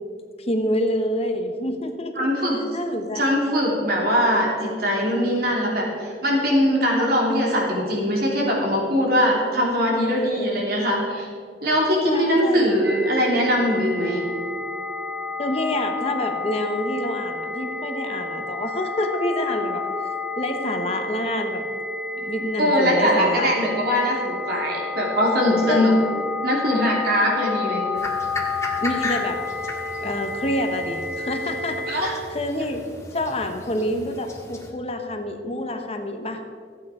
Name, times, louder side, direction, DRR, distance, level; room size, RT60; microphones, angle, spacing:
voice 1, 0.4-2.3 2.7-3.2 10.1-10.6 11.9-12.7 15.4-21.7 22.2-23.5 25.7-25.9 28.8-29.4 30.0-32.9 33.1-36.4, left 1 dB, 35° left, 6 dB, 1.0 m, -27 dB
voice 2, 2.2-2.6 3.1-11.3 11.6-14.2 22.6-25.9 26.4-27.8 31.9-32.1, equal, 60° right, -2 dB, 3.2 m, -21 dB
sound 1, 12.8-32.0, left 3 dB, 10° right, 0.9 m, -30 dB
sound 2, 27.9-34.7, left 2 dB, 15° left, 1.6 m, -36 dB
14.5 x 8.7 x 4.9 m, 2.1 s
head